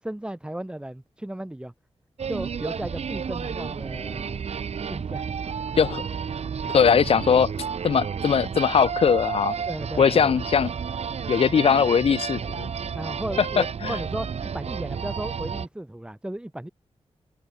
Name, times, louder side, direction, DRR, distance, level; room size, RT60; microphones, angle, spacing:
voice 1, 0.0-1.7 2.3-4.4 4.9-5.3 6.6-6.8 9.7-10.3 12.9-16.7, right 1 dB, 10° right, 4.2 m, -35 dB
sound 1, 2.2-15.7, right 6 dB, 75° right, 5.5 m, -31 dB
voice 2, 6.7-7.5 7.8-9.5 10.0-10.7 11.3-12.7 13.4-14.0, left 7 dB, 65° left, 0.8 m, -20 dB
open air
wide cardioid pair, 120°, 11 cm